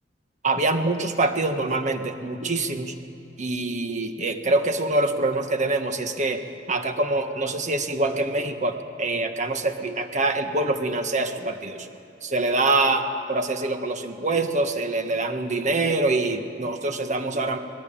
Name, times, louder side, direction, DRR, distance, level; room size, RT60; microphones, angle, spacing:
voice 1, 0.4-2.9 3.4-6.4 6.7-11.9 12.2-17.6, right 2 dB, 40° right, 6 dB, 1.6 m, -25 dB
24.0 x 19.0 x 8.9 m, 2.7 s
head